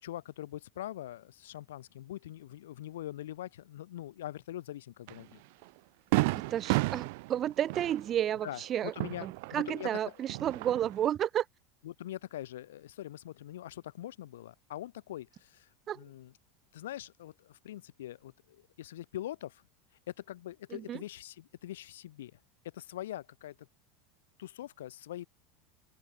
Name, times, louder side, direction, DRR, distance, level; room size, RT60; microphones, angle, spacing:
voice 1, 0.0-5.4 8.4-8.6 8.9-9.9 11.8-15.7 16.0-16.3 16.7-19.6 20.1-22.4 22.7-23.6 24.4-25.3, left 13 dB, 90° left, 4.8 m, -43 dB
Fireworks, 5.1-5.2 5.6-5.7 6.1-9.9 10.2-11.1, right 26 dB, 70° right, 3.3 m, -32 dB
voice 2, 6.3-7.0 7.3-8.9 9.2-11.4 15.9-16.0 20.7-21.0, right 10 dB, 35° right, 1.7 m, -31 dB
open air
supercardioid pair, 120°, 0 cm